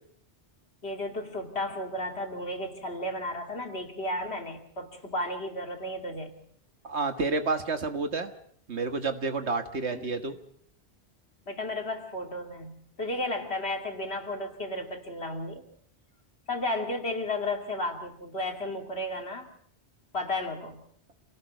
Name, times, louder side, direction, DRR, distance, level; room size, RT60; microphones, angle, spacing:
voice 1, 0.8-6.3 9.9-10.1 11.5-15.7 16.5-19.5 20.1-20.8, left 1 dB, 70° left, 4 dB, 2.9 m, -33 dB
voice 2, 6.8-8.3 8.7-10.4, right 3 dB, 75° right, 8 dB, 1.9 m, -29 dB
27.5 x 18.5 x 5.3 m, 0.63 s
omnidirectional pair, 1.1 m